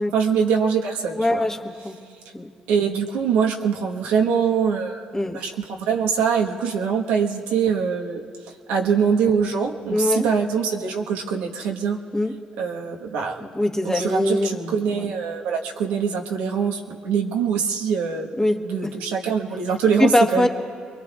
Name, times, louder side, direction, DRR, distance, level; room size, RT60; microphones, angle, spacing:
voice 1, 0.1-1.4 2.7-12.0 12.6-13.5 13.8-18.3 18.6-20.5, right 6 dB, 90° right, 0 dB, 1.3 m, -23 dB
voice 2, 1.2-1.9 2.3-2.5 5.1-5.4 9.9-10.3 12.1-12.4 13.4-15.0 18.4-18.9 20.0-20.5, left 1 dB, 15° left, 3 dB, 1.4 m, -22 dB
26.0 x 22.5 x 2.4 m, 2.2 s
supercardioid pair, 60°, 3 cm